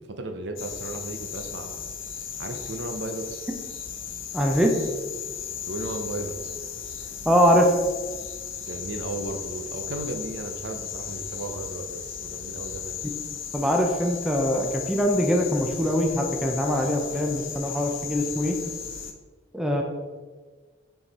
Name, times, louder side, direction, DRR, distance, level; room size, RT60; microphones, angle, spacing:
voice 1, 0.0-1.8 2.4-3.4 5.7-6.6 8.6-13.0, right 2 dB, 55° right, 5 dB, 0.6 m, -35 dB
sound 1, 0.6-19.1, left 8 dB, 70° left, 0.7 m, -36 dB
voice 2, 4.3-4.7 7.3-7.7 13.5-18.5 19.5-19.8, equal, 5° right, 1 dB, 0.6 m, -22 dB
6.2 x 4.7 x 4.2 m, 1.4 s
head